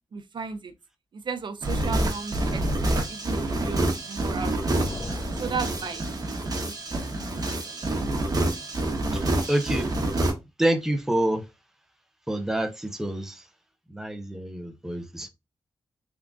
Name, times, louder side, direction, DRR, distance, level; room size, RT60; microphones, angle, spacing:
voice 1, 0.1-0.7 1.1-2.6 2.9-4.8 5.2-6.1 6.6-7.1 7.5-7.9, right 5 dB, 65° right, 0.5 m, -35 dB
sound 1, 1.6-10.3, right 1 dB, 45° right, 1.0 m, -27 dB
sound 2, 4.7-7.0, left 2 dB, 40° left, 1.2 m, -38 dB
voice 2, 9.1-10.0 10.6-11.4 12.3-13.5 13.9-15.3, right 1 dB, 5° right, 0.6 m, -27 dB
3.6 x 3.6 x 2.3 m
wide cardioid pair, 115°, 9 cm